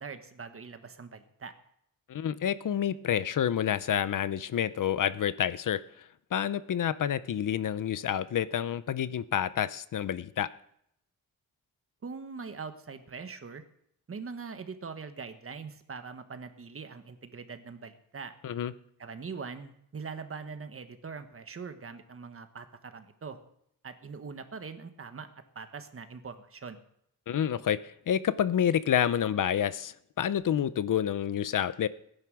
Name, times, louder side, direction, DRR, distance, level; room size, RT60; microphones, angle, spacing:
voice 1, 0.0-1.5 12.0-13.6 14.1-18.3 19.0-23.4 23.8-25.3 25.5-26.8, right 5 dB, 40° right, 8 dB, 1.4 m, -42 dB
voice 2, 2.1-5.8 6.3-10.5 18.4-18.7 27.3-31.9, left 9 dB, 60° left, 16 dB, 0.7 m, -28 dB
17.5 x 10.5 x 6.3 m, 0.72 s
wide cardioid pair, 150°, 35 cm